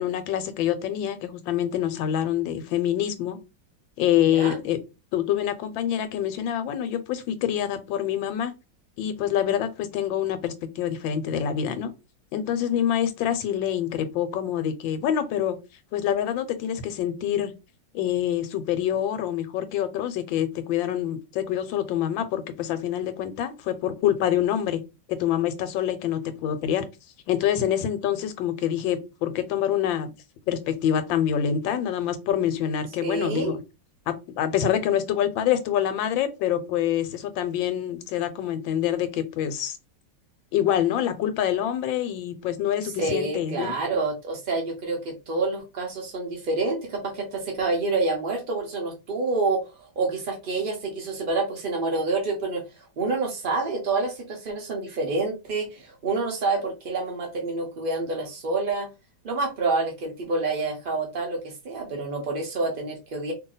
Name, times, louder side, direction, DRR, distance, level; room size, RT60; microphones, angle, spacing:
voice 1, 0.0-3.4 4.0-4.8 5.1-8.5 9.0-11.9 12.3-15.6 15.9-17.5 17.9-24.8 25.1-26.8 27.3-30.1 30.5-33.6 34.1-39.8 40.5-43.8, left 10 dB, 90° left, 1.4 m, -26 dB
voice 2, 33.0-33.6 42.8-52.6 53.0-58.9 59.2-63.3, right 3 dB, 60° right, 0.5 m, -28 dB
2.8 x 2.6 x 3.9 m
omnidirectional pair, 2.0 m